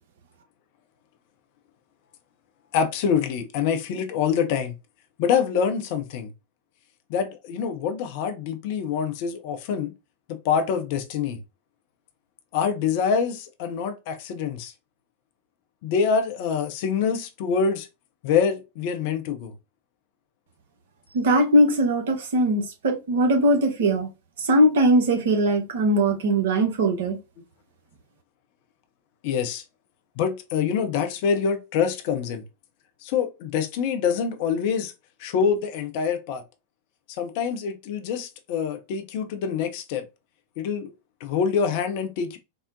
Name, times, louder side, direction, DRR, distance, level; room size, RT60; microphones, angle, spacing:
voice 1, 2.7-4.7 5.2-6.3 7.1-9.9 10.3-11.4 12.5-14.7 15.8-17.9 18.2-19.5 29.2-29.6 30.2-32.4 33.0-34.9 35.2-36.4 37.2-40.0 40.6-40.9 41.2-42.4, left 6 dB, 50° left, 0.5 m, -25 dB
voice 2, 21.1-24.1 24.5-27.2, right 1 dB, 55° right, 0.8 m, -20 dB
3.6 x 2.1 x 2.5 m
figure-of-eight pair, 90°, 0 cm